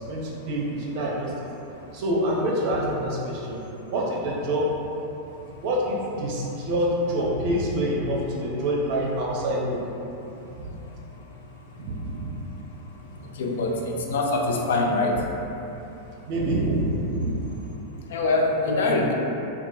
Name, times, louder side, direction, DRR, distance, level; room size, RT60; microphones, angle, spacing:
voice 1, 0.0-1.3 1.9-3.6 3.9-4.7 5.6-9.8 10.6-10.7 11.8-12.3 16.3-17.4, right 1 dB, 45° right, -4 dB, 0.6 m, -26 dB
voice 2, 13.4-15.2 18.1-19.1, left 2 dB, 60° left, 1 dB, 0.3 m, -23 dB
2.3 x 2.1 x 3.8 m, 3.0 s
figure-of-eight pair, 90°, 0 cm